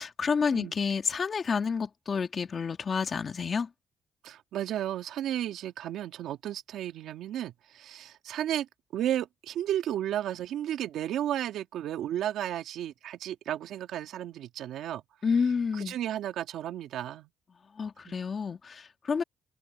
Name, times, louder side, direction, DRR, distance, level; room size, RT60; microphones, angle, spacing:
voice 1, 0.0-3.7 15.2-15.9 17.8-19.2, left 5 dB, 40° left, 2.7 m, -29 dB
voice 2, 4.2-15.0 15.7-17.3 18.1-18.2, right 11 dB, 80° right, 2.4 m, -33 dB
cardioid pair, 90°, 0 cm